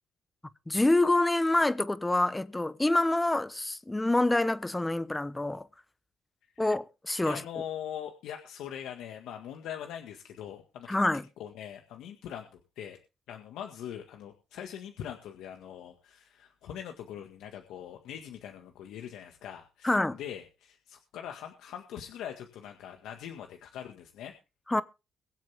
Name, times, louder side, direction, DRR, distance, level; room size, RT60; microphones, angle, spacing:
voice 1, 0.7-5.7 6.6-7.4 10.9-11.2 19.8-20.2 24.7-24.8, left 2 dB, 15° left, 1.0 m, -26 dB
voice 2, 7.2-11.0 11.4-13.0 13.3-24.3, left 9 dB, 85° left, 1.8 m, -42 dB
23.0 x 7.7 x 3.6 m
cardioid pair, 90°, 0 cm